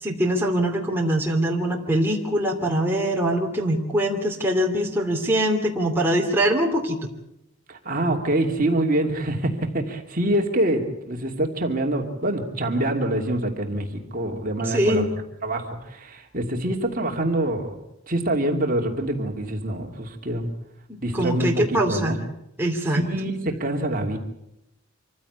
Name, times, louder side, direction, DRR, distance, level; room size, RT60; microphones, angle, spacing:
voice 1, 0.0-7.1 14.6-15.1 20.9-22.1 22.6-23.0, right 1 dB, 10° right, -1 dB, 2.6 m, -23 dB
voice 2, 7.7-15.1 15.4-17.8 18.1-20.5 21.0-22.2 22.9-24.2, right 1 dB, 40° right, 2 dB, 2.7 m, -25 dB
26.0 x 15.5 x 8.1 m, 0.84 s
head